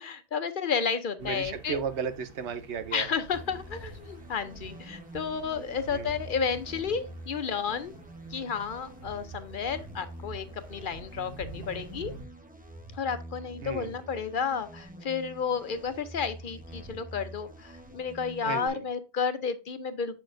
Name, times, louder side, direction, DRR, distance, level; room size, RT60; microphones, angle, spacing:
voice 1, 0.0-1.8 2.9-7.9 8.3-12.1 12.9-20.1, left 6 dB, 55° left, 0.7 m, -32 dB
sound 1, 1.2-12.3, right 3 dB, 55° right, 1.3 m, -48 dB
voice 2, 1.2-3.2 5.9-6.2 13.6-14.0 18.4-18.8, right 6 dB, 85° right, 1.1 m, -34 dB
sound 2, 3.3-18.7, right 1 dB, 10° right, 0.8 m, -46 dB
6.8 x 6.1 x 2.5 m
omnidirectional pair, 1.1 m